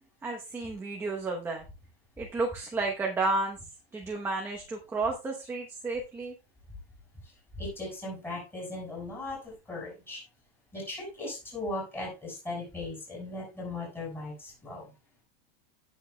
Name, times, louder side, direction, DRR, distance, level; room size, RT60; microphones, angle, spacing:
voice 1, 0.2-1.6 2.2-3.6 3.9-6.3, right 3 dB, 10° right, 0 dB, 1.0 m, -32 dB
voice 2, 7.6-10.2 10.7-14.8, left 2 dB, 5° left, -4 dB, 6.5 m, -38 dB
17.0 x 7.4 x 2.3 m, 0.28 s
supercardioid pair, 170°, 30 cm